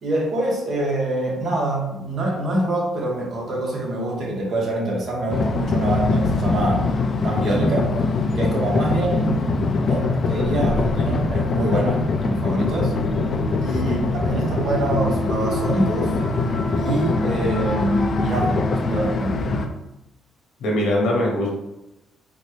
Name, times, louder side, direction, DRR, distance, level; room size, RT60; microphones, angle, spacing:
voice 1, 0.0-6.9 7.2-7.9 8.3-12.9 13.6-16.2 16.7-19.4, right 1 dB, 60° right, -2 dB, 1.1 m, -25 dB
sound 1, 5.3-19.7, left 3 dB, 50° left, 0.4 m, -23 dB
voice 2, 13.6-14.0 20.6-21.5, left 1 dB, 80° left, -2 dB, 1.0 m, -22 dB
3.9 x 2.2 x 3.1 m, 0.94 s
cardioid pair, 90°, 0 cm